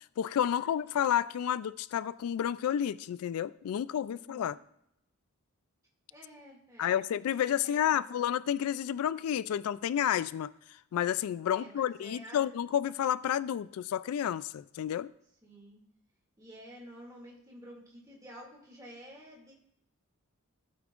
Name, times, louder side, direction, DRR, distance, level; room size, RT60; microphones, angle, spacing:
voice 1, 0.2-4.6 6.8-10.5 10.9-15.1, left 10 dB, 80° left, 0.3 m, -30 dB
voice 2, 3.9-4.6 6.1-7.0 7.6-8.2 11.5-12.4 15.4-15.8 16.4-19.5, equal, 15° right, 2.3 m, -51 dB
15.5 x 8.6 x 2.5 m
head